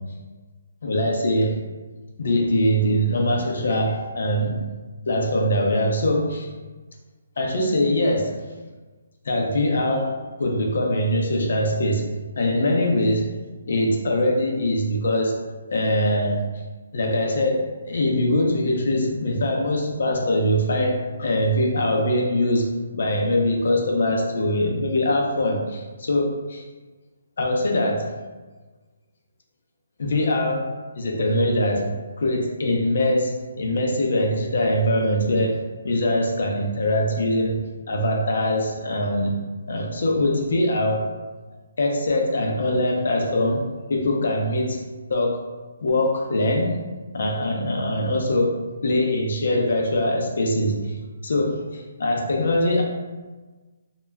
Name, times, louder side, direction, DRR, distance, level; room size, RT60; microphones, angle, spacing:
voice 1, 0.8-1.6 2.2-4.6 5.1-6.5 7.4-8.3 9.2-10.1 10.4-12.1 12.4-13.4 13.7-15.3 15.7-16.4 16.9-22.7 22.9-26.6 27.4-28.1 30.0-30.6 31.0-31.9 32.2-39.3 39.7-41.0 41.8-43.6 43.9-44.8 45.1-45.4 45.8-46.8 47.1-48.5 48.8-50.9 51.2-52.8, left 1 dB, 60° left, 1 dB, 0.5 m, -22 dB
2.2 x 2.0 x 3.3 m, 1.3 s
hypercardioid pair, 175°, 0 cm